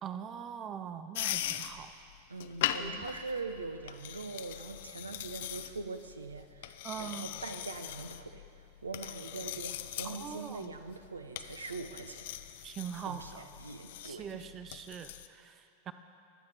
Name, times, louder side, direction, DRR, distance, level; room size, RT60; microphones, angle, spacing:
voice 1, 0.0-1.9 2.8-3.0 6.8-7.3 10.0-10.8 12.6-13.4 14.1-15.9, right 8 dB, 30° right, 10 dB, 0.5 m, -42 dB
sound 1, 1.1-15.3, left 12 dB, 55° left, 0.4 m, -41 dB
voice 2, 2.3-12.3 13.0-14.4, right 3 dB, 75° right, 9 dB, 0.6 m, -42 dB
21.5 x 8.0 x 3.4 m, 2.6 s
figure-of-eight pair, 90°, 0 cm